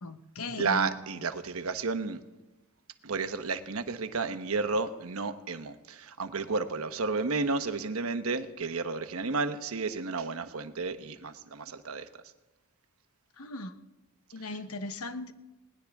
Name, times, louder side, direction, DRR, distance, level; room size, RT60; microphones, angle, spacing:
voice 1, 0.0-0.9 13.4-13.7 14.3-15.3, left 1 dB, 80° left, 9 dB, 1.1 m, -37 dB
voice 2, 0.5-2.2 3.0-12.1 14.4-14.6, right 4 dB, 70° right, 9 dB, 1.0 m, -32 dB
20.5 x 18.5 x 3.6 m, 1.1 s
head